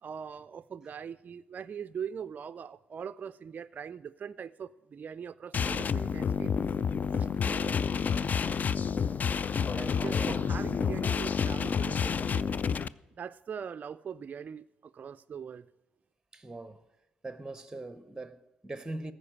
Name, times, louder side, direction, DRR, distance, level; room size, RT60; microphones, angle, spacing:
voice 1, 0.0-6.5 7.1-7.3 10.0-12.5 13.2-15.7, right 7 dB, 40° right, 0.3 m, -41 dB
sound 1, 5.5-12.9, left 6 dB, 40° left, 0.4 m, -29 dB
voice 2, 7.4-7.9 9.7-10.5 16.3-16.8 17.2-19.1, right 2 dB, 10° right, 0.8 m, -41 dB
14.5 x 5.0 x 8.6 m
hypercardioid pair, 45°, 4 cm